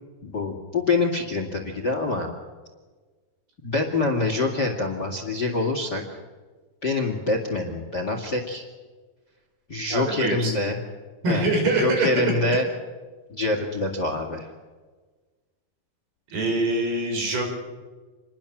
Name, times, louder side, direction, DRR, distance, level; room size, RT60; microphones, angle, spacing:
voice 1, 0.2-2.3 3.6-6.0 6.8-8.6 9.7-10.8 11.3-12.7 13.3-14.5, left 3 dB, 30° left, 4 dB, 2.1 m, -25 dB
voice 2, 9.9-10.6 11.2-12.1 16.3-17.5, right 2 dB, 65° right, 2 dB, 7.3 m, -24 dB
28.0 x 21.5 x 7.3 m, 1.4 s
omnidirectional pair, 4.8 m